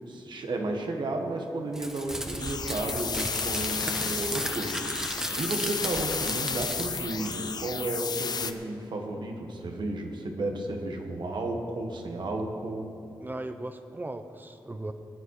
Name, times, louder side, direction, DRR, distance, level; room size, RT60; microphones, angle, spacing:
voice 1, 0.1-12.9, right 2 dB, 70° right, 3 dB, 1.8 m, -33 dB
Crumpling crinkling, 1.7-7.7, equal, 5° right, 1.5 m, -35 dB
sound 1, 2.4-8.5, left 5 dB, 55° left, 0.7 m, -33 dB
voice 2, 13.2-14.9, right 2 dB, 25° right, 8 dB, 0.8 m, -37 dB
18.5 x 9.4 x 4.9 m, 2.5 s
cardioid pair, 80°, 8 cm